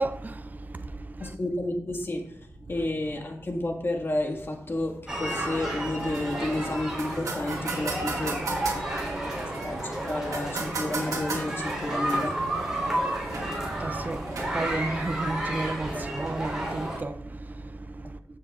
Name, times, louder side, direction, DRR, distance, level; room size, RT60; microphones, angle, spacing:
voice 1, 0.0-1.4 8.8-9.4 12.7-18.2, right 2 dB, 30° right, 0.5 m, -34 dB
voice 2, 1.2-2.4 2.7-8.5 9.4-12.4, left 1 dB, 40° left, 1.8 m, -31 dB
sound 1, 5.1-17.0, right 1 dB, 10° right, 3.5 m, -31 dB
sound 2, 5.2-15.3, right 3 dB, 75° right, 1.9 m, -38 dB
15.0 x 6.9 x 2.4 m
wide cardioid pair, 80°, 6 cm